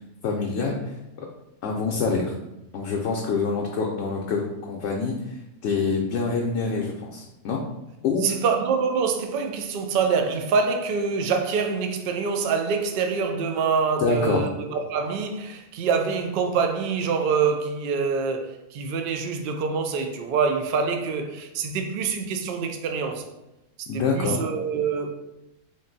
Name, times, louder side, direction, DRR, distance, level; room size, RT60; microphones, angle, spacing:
voice 1, 0.2-1.3 1.6-2.3 2.7-5.4 5.6-7.6 8.0-8.4 14.0-14.4 23.9-24.4, left 4 dB, 70° left, 0.8 m, -26 dB
voice 2, 8.2-23.2 23.9-25.1, right 5 dB, 65° right, 0.5 m, -25 dB
3.7 x 2.5 x 3.8 m
omnidirectional pair, 1.3 m